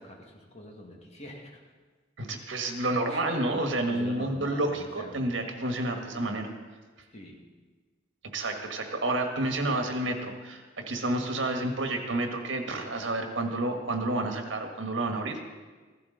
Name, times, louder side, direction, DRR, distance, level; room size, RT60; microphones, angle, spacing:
voice 1, 0.0-1.6 2.5-2.6 3.1-3.2 3.8-5.3 7.1-7.4, equal, 35° left, -1 dB, 2.1 m, -44 dB
voice 2, 2.2-6.5 8.3-15.4, right 2 dB, 80° right, 4 dB, 1.6 m, -30 dB
15.0 x 12.0 x 3.9 m, 1.4 s
head